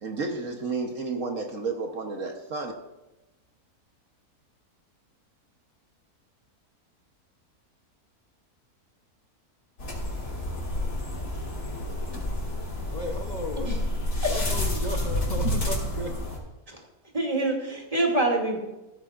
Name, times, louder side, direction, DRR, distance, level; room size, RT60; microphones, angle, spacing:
voice 1, 0.0-2.7, right 4 dB, 60° right, 3 dB, 1.4 m, -31 dB
sound 1, 9.8-16.4, left 1 dB, 80° left, 3.6 m, -29 dB
voice 2, 12.6-13.8 14.3-16.2, left 1 dB, 35° left, 2 dB, 0.8 m, -35 dB
voice 3, 17.1-18.6, right 2 dB, 20° right, 0 dB, 2.5 m, -26 dB
16.0 x 14.0 x 2.5 m, 1.0 s
omnidirectional pair, 1.6 m